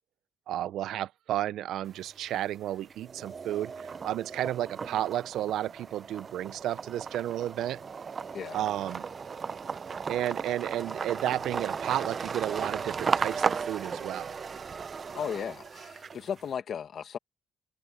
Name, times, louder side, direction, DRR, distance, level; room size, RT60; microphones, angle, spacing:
voice 1, 0.5-7.8 8.5-9.1 10.1-14.4, right 12 dB, 80° right, 0.6 m, -32 dB
sound 1, 1.9-2.5 2.9-16.4, right 5 dB, 40° right, 0.7 m, -35 dB
voice 2, 15.1-17.2, left 7 dB, 60° left, 1.8 m, -35 dB
open air
cardioid pair, 90°, 0 cm